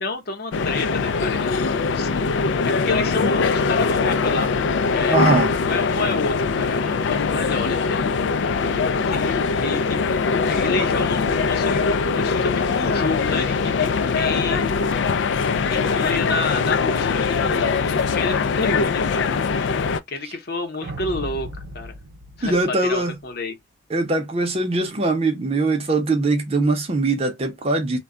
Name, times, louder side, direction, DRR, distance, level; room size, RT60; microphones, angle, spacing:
voice 1, 0.0-2.1 2.6-5.2 5.6-8.5 9.1-14.7 15.7-21.5 21.7-22.0 22.4-23.5, left 3 dB, 55° left, 0.8 m, -30 dB
sound 1, 0.5-20.0, left 4 dB, 75° left, 0.3 m, -22 dB
voice 2, 5.1-5.5 22.4-23.1 23.9-28.0, right 2 dB, 35° right, 0.6 m, -21 dB
sound 2, 20.8-23.3, right 1 dB, 80° right, 0.6 m, -36 dB
2.2 x 2.1 x 3.5 m
head